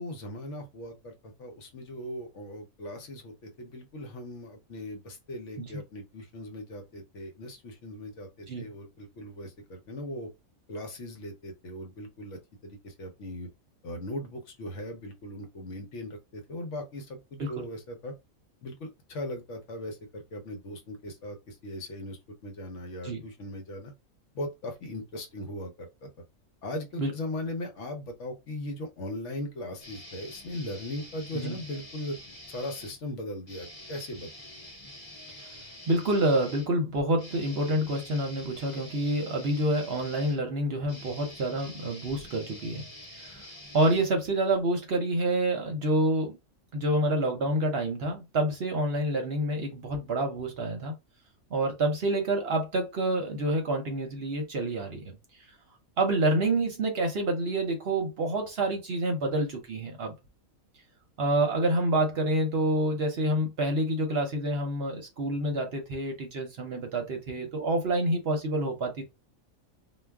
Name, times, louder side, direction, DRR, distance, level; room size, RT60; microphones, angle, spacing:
voice 1, 0.0-3.3 3.6-10.3 10.7-13.5 13.8-18.1 18.6-23.9 24.3-26.1 26.6-32.2 32.5-34.3, left 1 dB, 65° left, 1.0 m, -39 dB
sound 1, 29.8-33.0 33.4-44.6, left 1 dB, 30° left, 0.8 m, -47 dB
voice 2, 35.9-42.8 43.2-43.4 43.7-46.4 46.7-50.9 51.5-55.2 56.0-60.1 61.2-69.0, right 1 dB, 55° right, 0.8 m, -28 dB
2.4 x 2.3 x 3.3 m
omnidirectional pair, 1.4 m